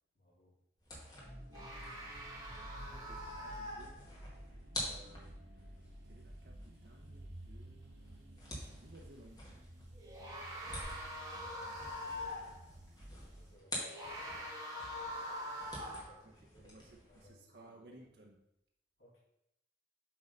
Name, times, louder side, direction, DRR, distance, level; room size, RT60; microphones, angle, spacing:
voice 1, 0.1-0.5 11.3-12.7 13.1-14.6 14.9-15.3 15.8-17.7 19.0-19.2, left 1 dB, 80° left, -8 dB, 3.1 m, -66 dB
sound 1, 0.8-14.5 14.8-17.3, left 1 dB, 20° left, 1.9 m, -49 dB
sound 2, 1.2-13.6, right 1 dB, 80° right, 1.5 m, -53 dB
sound 3, 1.5-4.3 8.5-8.7 10.0-12.6 13.7-16.2, left 1 dB, 20° right, 2.4 m, -44 dB
voice 2, 2.9-4.0 4.8-9.5 16.2-18.4, right 1 dB, 65° right, 0 dB, 0.8 m, -59 dB
7.7 x 3.9 x 5.4 m, 0.83 s
head